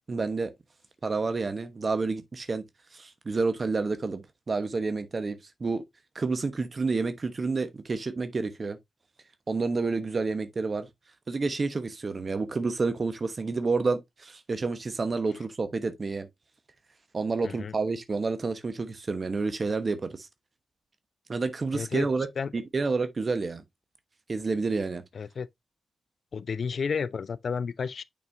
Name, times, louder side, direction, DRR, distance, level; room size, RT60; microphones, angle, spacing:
voice 1, 0.1-0.5 1.0-2.6 2.9-5.8 6.1-8.8 9.5-10.9 11.3-16.3 17.1-20.3 21.3-22.3 22.5-23.6 24.3-25.0, right 4 dB, 50° right, 1.1 m, -29 dB
voice 2, 17.4-17.7 21.7-22.1 22.4-22.5 25.1-25.5 26.3-28.0, left 6 dB, 65° left, 0.4 m, -31 dB
7.1 x 5.4 x 2.6 m
supercardioid pair, 45°, 0 cm